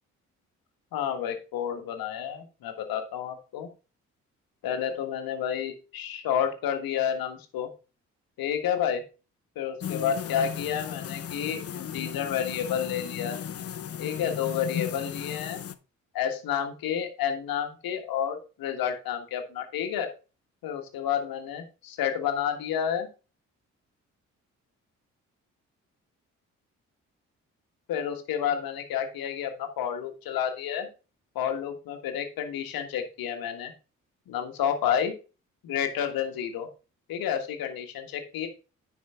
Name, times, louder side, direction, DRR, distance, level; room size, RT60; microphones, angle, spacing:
voice 1, 0.9-3.7 4.6-7.7 8.4-9.0 9.5-13.4 14.0-15.6 16.1-20.1 20.6-23.1 27.9-30.9 31.3-33.7 34.3-35.1 35.6-36.7 37.1-38.5, left 9 dB, 65° left, 6 dB, 1.5 m, -30 dB
sound 1, 9.8-15.7, left 9 dB, 40° left, 0.7 m, -36 dB
9.6 x 5.0 x 3.6 m, 0.32 s
hypercardioid pair, 40°, 38 cm